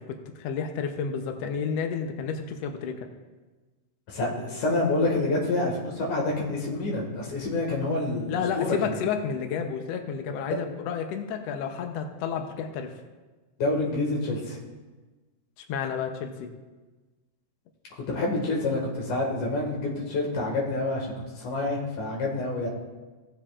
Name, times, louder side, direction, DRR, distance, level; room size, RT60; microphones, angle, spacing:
voice 1, 0.0-3.0 8.3-12.9 15.6-16.5, left 6 dB, 90° left, 5 dB, 1.4 m, -31 dB
voice 2, 4.1-8.9 13.6-14.6 18.1-22.7, left 2 dB, 65° left, -1 dB, 3.2 m, -27 dB
16.5 x 7.3 x 2.4 m, 1.2 s
omnidirectional pair, 4.0 m